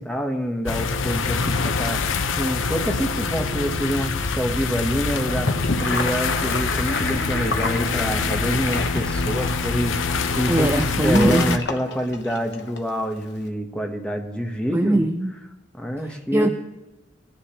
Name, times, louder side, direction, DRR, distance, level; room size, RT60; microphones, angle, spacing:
voice 1, 0.0-5.5 5.8-15.0 15.7-16.5, equal, 5° left, 2 dB, 1.0 m, -26 dB
sound 1, 0.7-11.6, left 4 dB, 85° left, 0.7 m, -25 dB
Gurgling / Sink (filling or washing), 5.3-12.8, left 3 dB, 60° left, 0.9 m, -29 dB
Guitar, 6.9-10.8, left 1 dB, 40° left, 2.0 m, -40 dB
voice 2, 10.5-11.6 14.7-15.3 16.3-16.5, right 1 dB, 10° right, 7 dB, 0.4 m, -20 dB
19.5 x 10.0 x 2.9 m, 1.0 s
head